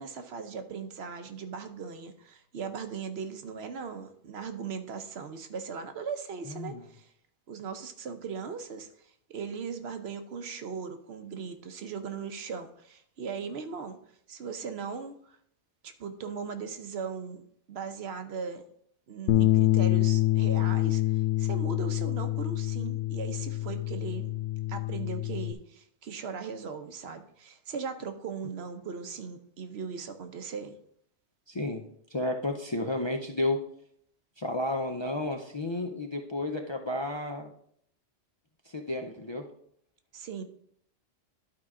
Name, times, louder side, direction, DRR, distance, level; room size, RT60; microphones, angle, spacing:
voice 1, 0.0-7.1 7.5-14.0 14.3-15.4 15.8-17.4 17.7-18.6 19.1-24.3 24.7-30.8 40.1-40.4, right 5 dB, 70° right, 8 dB, 1.0 m, -38 dB
voice 2, 6.5-6.8 31.5-31.8 32.1-33.6 34.4-37.5 38.7-39.5, left 2 dB, 35° left, 2 dB, 0.4 m, -32 dB
Bass guitar, 19.3-25.5, left 15 dB, 80° left, 0.9 m, -26 dB
11.5 x 4.7 x 3.7 m, 0.68 s
omnidirectional pair, 1.2 m